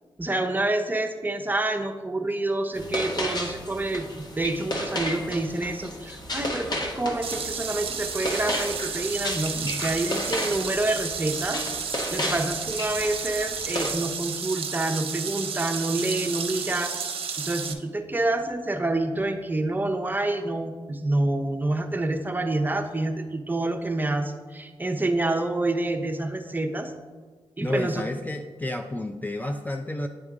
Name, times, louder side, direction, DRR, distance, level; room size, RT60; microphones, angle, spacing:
voice 1, 0.2-4.0 4.4-11.6 12.1-16.9 17.4-26.9 27.6-28.0, right 2 dB, 20° right, 4 dB, 0.7 m, -27 dB
sound 1, 2.7-13.9, left 1 dB, 45° left, 1.0 m, -33 dB
sound 2, 7.2-17.7, right 6 dB, 65° right, 0.6 m, -32 dB
voice 2, 27.6-30.1, left 2 dB, 15° left, 5 dB, 0.4 m, -31 dB
9.7 x 3.5 x 3.6 m, 1.4 s
cardioid pair, 65°, 10 cm